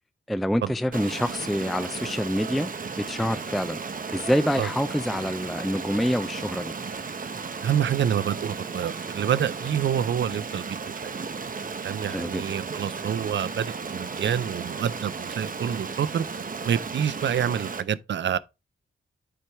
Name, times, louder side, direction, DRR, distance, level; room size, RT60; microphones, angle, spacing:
voice 1, 0.3-2.7 3.0-3.8 4.1-6.7 12.1-12.4, equal, ahead, 0.4 m, -26 dB
Stream, 0.9-17.8, right 5 dB, 40° right, 0.8 m, -35 dB
voice 2, 7.6-10.7 10.9-11.2 11.8-16.2 16.6-18.4, right 9 dB, 60° right, 0.5 m, -27 dB
10.0 x 4.5 x 3.4 m
wide cardioid pair, 105°, 21 cm